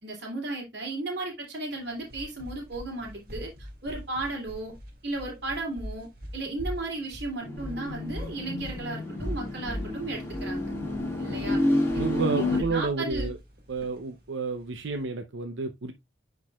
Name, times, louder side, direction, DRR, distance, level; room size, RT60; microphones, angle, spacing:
voice 1, 0.0-3.5 3.8-4.7 5.0-6.1 6.3-10.7 11.2-11.6 11.9-13.3, right 2 dB, 70° right, 2.7 m, -34 dB
sound 1, 1.8-15.0, equal, 50° right, 2.1 m, -40 dB
sound 2, 7.4-12.6, left 1 dB, 15° left, 2.0 m, -30 dB
voice 2, 11.9-13.4 13.7-15.9, right 4 dB, 85° right, 0.7 m, -30 dB
10.0 x 4.7 x 2.3 m
head